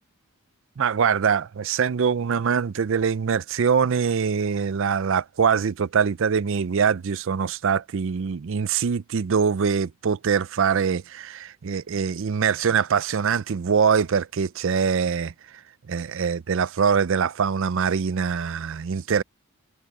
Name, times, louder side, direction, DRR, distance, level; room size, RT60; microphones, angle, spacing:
voice 1, 0.8-15.3 15.9-19.2, right 6 dB, 60° right, 0.4 m, -23 dB
head